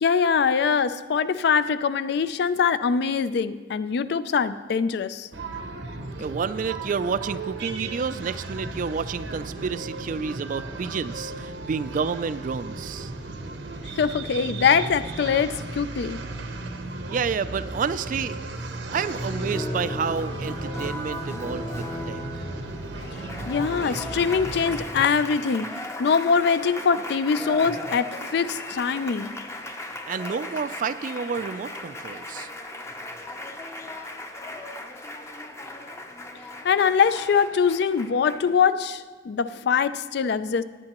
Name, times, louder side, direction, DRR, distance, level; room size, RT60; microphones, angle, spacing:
voice 1, 0.0-5.3 13.9-16.2 23.5-25.7 26.0-29.3 36.6-40.6, left 6 dB, 60° left, 0.3 m, -23 dB
sound 1, 5.3-24.8, right 2 dB, 80° right, 0.9 m, -35 dB
voice 2, 6.2-13.1 16.8-18.4 18.9-22.4 30.1-32.5, right 5 dB, 45° right, 0.3 m, -30 dB
Applause, 18.9-38.6, left 1 dB, 15° left, 0.6 m, -37 dB
18.0 x 8.8 x 3.0 m
head